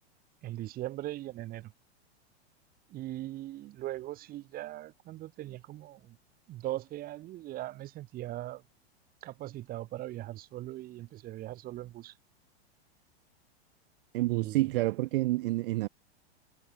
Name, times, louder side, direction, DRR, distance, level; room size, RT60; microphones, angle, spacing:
voice 1, 0.4-1.7 2.9-6.2 6.5-8.6 9.2-12.1 14.3-14.7, right 15 dB, 25° right, 2.0 m, -40 dB
voice 2, 14.1-15.9, right 19 dB, 55° right, 0.9 m, -28 dB
supercardioid pair, 155°, 33 cm